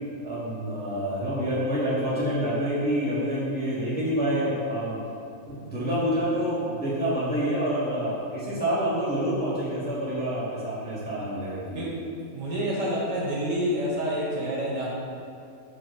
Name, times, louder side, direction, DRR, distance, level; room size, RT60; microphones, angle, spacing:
voice 1, 0.2-5.0 5.5-11.8, equal, 10° left, -8 dB, 0.8 m, -27 dB
voice 2, 11.7-14.9, equal, 65° right, -4 dB, 1.0 m, -28 dB
4.7 x 2.3 x 4.7 m, 2.5 s
omnidirectional pair, 1.5 m